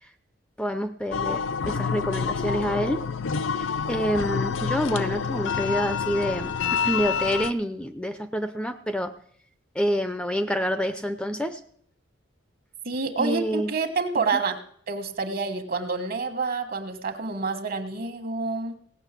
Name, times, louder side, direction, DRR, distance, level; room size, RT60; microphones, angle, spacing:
voice 1, 0.6-3.0 3.9-9.1 9.8-11.6 13.2-13.7 14.2-14.4, equal, 5° left, 11 dB, 0.5 m, -27 dB
sound 1, 1.1-7.5, left 6 dB, 70° left, 0.6 m, -28 dB
voice 2, 12.8-14.6 14.9-18.8, right 4 dB, 50° right, 8 dB, 1.4 m, -28 dB
17.0 x 6.3 x 8.2 m, 0.63 s
head